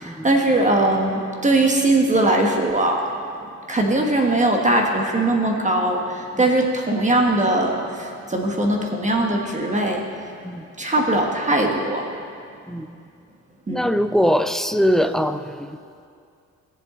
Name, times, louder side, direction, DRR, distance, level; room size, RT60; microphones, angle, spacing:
voice 1, 0.0-3.0 3.7-10.0 10.8-12.0 13.7-13.9, right 2 dB, 25° right, 1 dB, 1.4 m, -20 dB
voice 2, 13.7-15.8, equal, ahead, 9 dB, 0.4 m, -22 dB
19.5 x 7.4 x 3.8 m, 2.4 s
cardioid pair, 90°, 30 cm